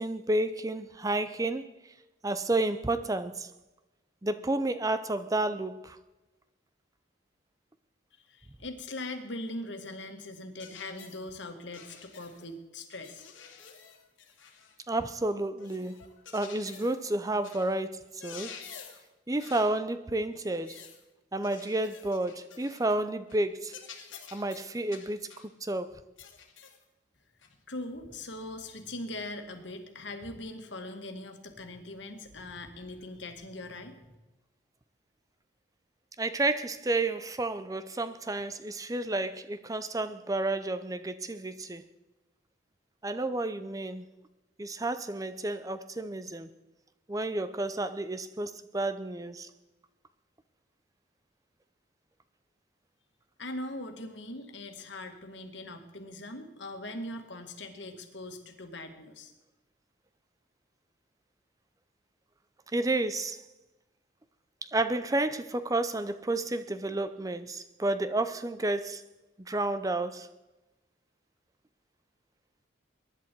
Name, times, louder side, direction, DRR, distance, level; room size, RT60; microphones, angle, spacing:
voice 1, 0.0-1.7 2.2-3.5 4.2-6.0 14.9-16.0 16.3-18.6 19.3-20.9 21.3-23.8 24.3-25.3 25.6-26.0 36.2-41.8 43.0-44.1 44.6-46.5 47.1-49.5 62.7-63.4 64.6-69.0 69.4-70.3, right 2 dB, 15° right, 0.5 m, -31 dB
voice 2, 8.3-13.2 27.7-34.0 53.4-59.3, left 1 dB, 70° left, 2.0 m, -41 dB
sound 1, 10.6-11.2 11.7-12.5 12.9-14.8 15.6-17.0 17.4-17.7 18.0-19.1 19.4-19.8 20.4-21.0 21.4-23.0 23.3-23.4 23.7-25.5 26.2-26.8 27.4-27.5 28.7-28.8, left 7 dB, 90° left, 2.5 m, -49 dB
23.0 x 11.0 x 4.6 m
head